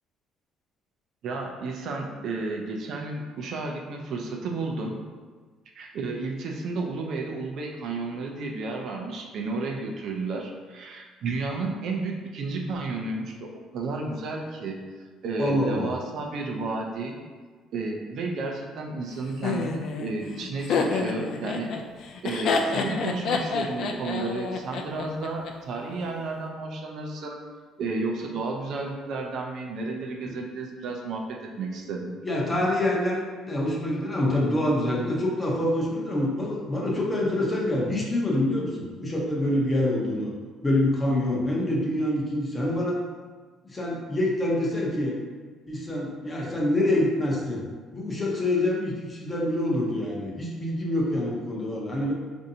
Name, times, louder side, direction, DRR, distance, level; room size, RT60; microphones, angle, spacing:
voice 1, 1.2-5.0 5.8-13.3 13.7-14.8 15.2-17.2 17.7-21.7 22.2-27.4 27.8-32.1, right 3 dB, 55° right, 1 dB, 0.4 m, -32 dB
voice 2, 15.4-15.9 32.2-33.2 33.5-40.3 40.6-43.0 43.6-45.1 45.7-47.6 47.9-52.1, left 1 dB, 15° left, -3 dB, 0.6 m, -26 dB
Laughter, 19.4-25.5, left 4 dB, 55° left, 0.3 m, -28 dB
4.3 x 2.6 x 2.7 m, 1.4 s
cardioid pair, 150°, 0 cm